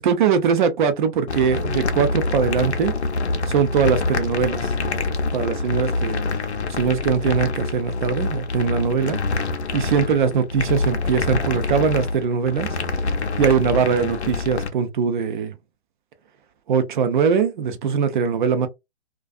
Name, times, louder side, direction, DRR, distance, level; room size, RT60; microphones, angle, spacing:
voice 1, 0.0-2.9 3.5-4.6 5.3-6.2 6.7-9.2 9.7-12.7 13.4-15.5 16.7-18.7, right 6 dB, 50° right, 0.6 m, -21 dB
sound 1, 1.3-14.7, left 3 dB, 90° left, 0.6 m, -25 dB
2.4 x 2.3 x 2.3 m
figure-of-eight pair, 130°, 32 cm